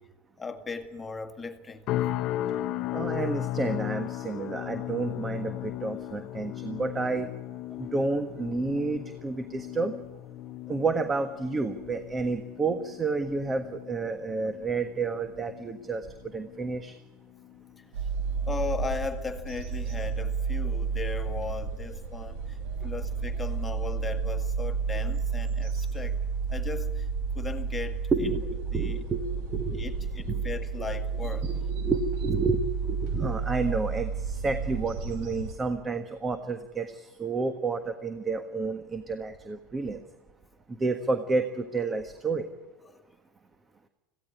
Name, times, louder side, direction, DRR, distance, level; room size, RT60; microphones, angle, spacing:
voice 1, 0.4-1.9 17.8-17.9 18.5-22.6 22.8-26.2 26.5-27.1 27.4-28.0 28.7-29.0 29.7-31.5 42.8-43.0, left 4 dB, 15° left, 2.0 m, -37 dB
sound 1, 1.9-17.1 17.4-17.8 18.3-18.5, left 13 dB, 50° left, 1.0 m, -36 dB
voice 2, 2.9-7.3 7.8-10.0 10.7-16.1 16.3-17.0 28.1-30.4 31.4-40.0 40.7-42.5, right 3 dB, 20° right, 1.5 m, -30 dB
sound 2, 17.9-35.5, right 5 dB, 65° right, 2.9 m, -31 dB
17.0 x 16.0 x 9.8 m
supercardioid pair, 105°, 0 cm